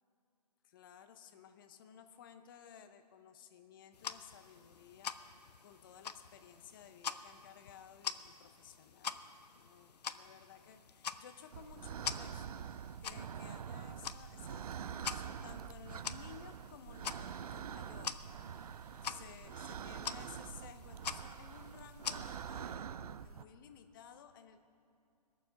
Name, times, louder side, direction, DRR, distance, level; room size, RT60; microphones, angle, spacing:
voice 1, 0.6-18.3 19.0-24.6, left 8 dB, 30° left, 9 dB, 0.7 m, -56 dB
sound 1, 3.9-22.7, left 7 dB, 75° left, 0.6 m, -46 dB
sound 2, 11.5-23.4, right 8 dB, 65° right, 0.4 m, -45 dB
20.5 x 7.0 x 5.7 m, 2.6 s
hypercardioid pair, 155°, 21 cm